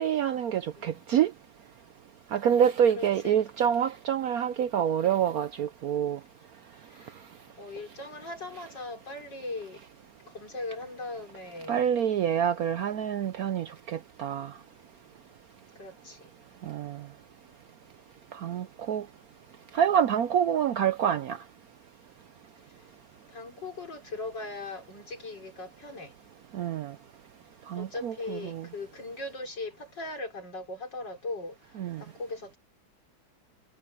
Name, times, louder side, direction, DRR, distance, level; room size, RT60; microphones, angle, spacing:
voice 1, 0.0-1.3 2.3-6.2 11.7-14.5 16.6-17.0 18.3-19.0 19.7-21.4 26.5-26.9 27.7-28.7 31.8-32.0, right 9 dB, 65° right, 0.9 m, -27 dB
voice 2, 3.0-3.4 7.6-9.8 10.3-11.9 15.8-16.2 23.3-26.1 27.7-31.5 32.0-32.6, left 2 dB, 65° left, 5.1 m, -39 dB
omnidirectional pair, 2.0 m